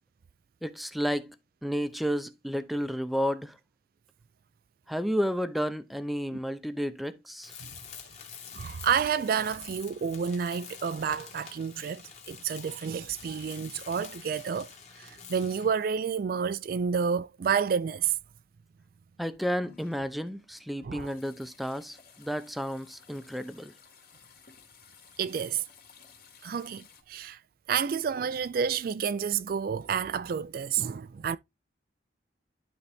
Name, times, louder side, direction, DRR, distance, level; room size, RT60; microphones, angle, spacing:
voice 1, 0.6-1.4 1.6-3.6 4.9-7.5 19.2-23.7, equal, ahead, 0.6 m, -31 dB
Tools, 7.4-15.8, left 7 dB, 35° left, 1.9 m, -47 dB
voice 2, 8.5-14.7 15.0-18.2 20.8-21.1 25.2-25.6 26.4-27.4 27.7-31.4, right 7 dB, 50° right, 0.3 m, -30 dB
sound 1, 19.2-27.0, left 6 dB, 55° left, 2.3 m, -56 dB
11.5 x 4.0 x 3.4 m
head